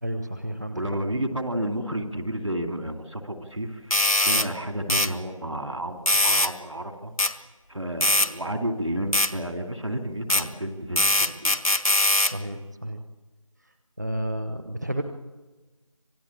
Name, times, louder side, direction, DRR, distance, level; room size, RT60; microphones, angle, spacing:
voice 1, 0.0-0.8 12.3-13.0 14.0-15.0, right 1 dB, 30° right, 7 dB, 0.9 m, -31 dB
voice 2, 0.7-7.1 7.7-11.6, right 1 dB, 65° right, 5 dB, 2.8 m, -31 dB
sound 1, 3.9-4.5 4.9-5.1 6.1-6.5 7.2-7.3 8.0-8.3 9.1-9.3 10.3-10.4 11.0-12.3, left 1 dB, 90° left, 1.8 m, -21 dB
26.5 x 18.0 x 8.6 m, 1.2 s
figure-of-eight pair, 175°, 17 cm